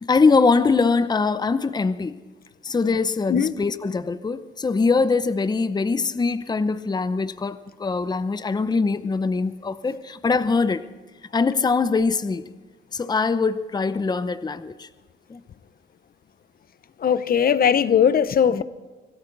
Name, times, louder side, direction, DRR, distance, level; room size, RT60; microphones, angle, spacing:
voice 1, 0.0-2.2 2.6-10.8 11.3-12.4 12.9-14.9 15.3-15.4 18.5-18.6, left 4 dB, 20° left, 0.7 m, -22 dB
voice 2, 17.0-18.6, left 8 dB, 50° left, 0.9 m, -19 dB
25.0 x 13.5 x 4.0 m
cardioid pair, 90°, 20 cm